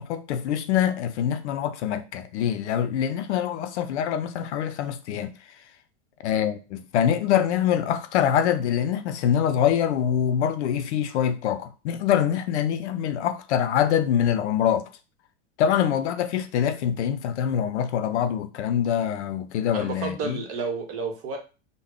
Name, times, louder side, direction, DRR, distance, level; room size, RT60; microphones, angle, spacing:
voice 1, 0.0-5.3 6.2-14.8 15.6-20.4, left 9 dB, 65° left, 0.6 m, -24 dB
voice 2, 19.7-21.4, right 4 dB, 40° right, 1.1 m, -31 dB
3.5 x 2.2 x 3.5 m
hypercardioid pair, 105°, 36 cm